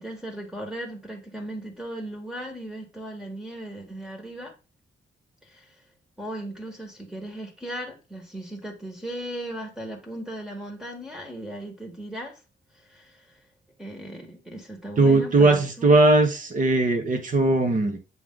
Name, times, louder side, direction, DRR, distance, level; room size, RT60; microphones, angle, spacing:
voice 1, 0.0-4.5 5.4-5.7 6.2-12.4 12.8-13.3 13.8-16.0, right 1 dB, 5° right, 1.5 m, -37 dB
voice 2, 15.0-18.0, right 2 dB, 40° right, 1.2 m, -19 dB
7.7 x 3.3 x 3.7 m
wide cardioid pair, 145°, 20 cm